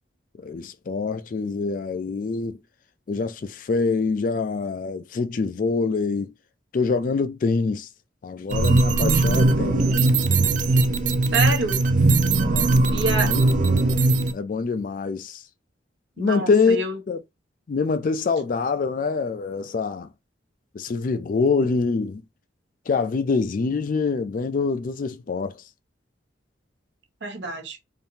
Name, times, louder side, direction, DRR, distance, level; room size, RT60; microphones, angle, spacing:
voice 1, 0.4-2.6 3.1-6.3 6.7-7.9 8.2-9.9 12.4-12.7 13.2-13.4 14.3-15.4 16.2-17.2 17.7-20.1 20.7-22.2 22.9-25.5, left 4 dB, 45° left, 0.3 m, -25 dB
sound 1, 8.5-14.3, right 2 dB, 45° right, 0.4 m, -20 dB
voice 2, 11.3-11.8 12.9-13.3 16.2-17.0 27.2-27.8, right 2 dB, 70° right, 0.9 m, -27 dB
3.5 x 2.6 x 2.8 m
head